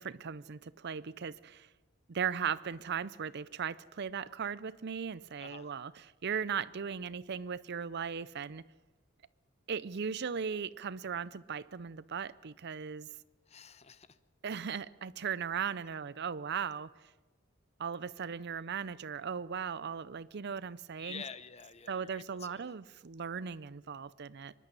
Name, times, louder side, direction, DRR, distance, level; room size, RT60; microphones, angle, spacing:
voice 1, 0.0-1.7 2.1-5.9 6.2-8.6 9.7-13.1 14.4-16.9 17.8-21.2 21.9-24.5, right 7 dB, 55° right, 0.6 m, -37 dB
voice 2, 5.4-5.7 13.5-14.2 21.0-22.7, left 6 dB, 30° left, 0.8 m, -48 dB
24.0 x 11.5 x 9.8 m
head